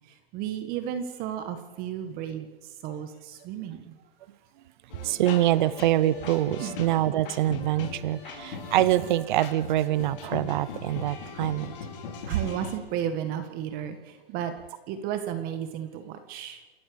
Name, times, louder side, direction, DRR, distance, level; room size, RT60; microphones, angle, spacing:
voice 1, 0.1-4.0 6.6-6.8 12.2-14.5 14.9-16.7, right 9 dB, 30° right, 8 dB, 1.7 m, -34 dB
sound 1, 4.9-12.8, left 5 dB, 60° left, 5.0 m, -39 dB
voice 2, 5.0-11.7, right 14 dB, 50° right, 18 dB, 0.9 m, -25 dB
28.5 x 13.0 x 7.0 m, 1.3 s
hypercardioid pair, 145°, 30 cm